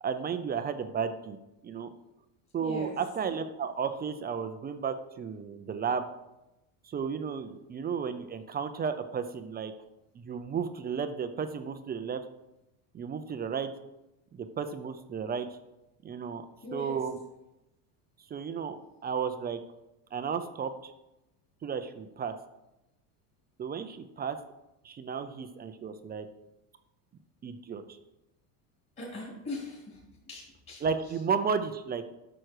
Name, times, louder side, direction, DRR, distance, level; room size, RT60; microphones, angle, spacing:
voice 1, 0.0-1.4 1.6-1.9 2.5-6.1 6.8-9.7 10.1-12.2 12.9-13.7 14.3-15.5 16.0-16.4 16.7-17.2 18.3-19.6 20.1-20.9 21.6-22.3 23.6-24.4 24.8-26.3 27.4-28.0 30.8-32.0, right 6 dB, 20° right, 9 dB, 0.4 m, -33 dB
voice 2, 2.6-2.9 16.6-17.0 29.0-30.0 30.3-30.8, left 2 dB, 30° left, -4 dB, 3.5 m, -40 dB
11.0 x 6.2 x 4.7 m, 0.94 s
cardioid pair, 135°, 46 cm